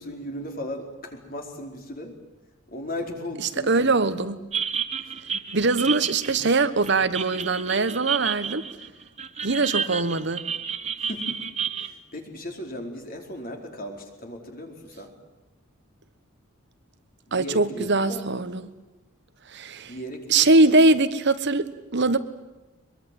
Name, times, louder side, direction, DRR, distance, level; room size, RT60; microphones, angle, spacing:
voice 1, 0.0-2.1 2.7-4.1 5.1-5.2 11.1-11.5 11.8-15.1 17.3-18.3 19.8-20.8, left 1 dB, 45° left, 4.5 m, -36 dB
voice 2, 3.4-4.4 5.5-8.6 9.4-10.4 17.3-18.7 19.5-19.9 20.3-22.2, right 3 dB, 55° right, 1.2 m, -22 dB
sound 1, 4.5-11.9, right 7 dB, 30° right, 1.0 m, -31 dB
24.0 x 22.5 x 9.4 m
head